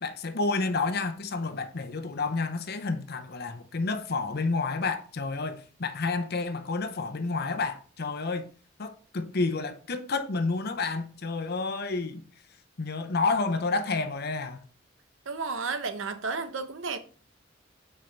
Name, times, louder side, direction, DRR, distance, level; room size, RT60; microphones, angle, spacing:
voice 1, 0.0-8.5 8.8-12.3 12.8-14.6, left 3 dB, 55° left, 0.7 m, -30 dB
voice 2, 15.3-17.0, right 4 dB, 85° right, 0.8 m, -32 dB
9.0 x 4.5 x 3.3 m
head